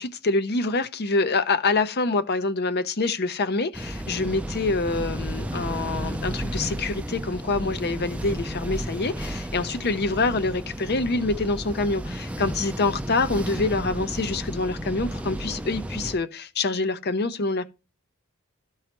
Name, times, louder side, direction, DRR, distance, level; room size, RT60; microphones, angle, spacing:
voice 1, 0.0-17.6, left 3 dB, 50° left, 0.7 m, -26 dB
sound 1, 3.7-16.2, right 1 dB, 5° right, 0.5 m, -33 dB
13.5 x 4.8 x 3.0 m
head